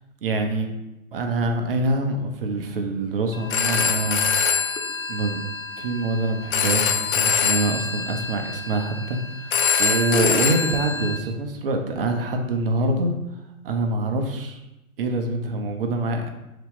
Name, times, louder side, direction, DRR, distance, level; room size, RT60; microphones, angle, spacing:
voice 1, 0.2-0.7 1.1-4.2 5.1-5.4 5.8-9.2 9.4-13.1 13.6-14.6 15.0-16.3, right 2 dB, 40° right, 4 dB, 0.6 m, -25 dB
Telephone, 3.3-11.2, left 6 dB, 70° left, 0.7 m, -24 dB
4.1 x 2.9 x 3.6 m, 0.93 s
hypercardioid pair, 135°, 43 cm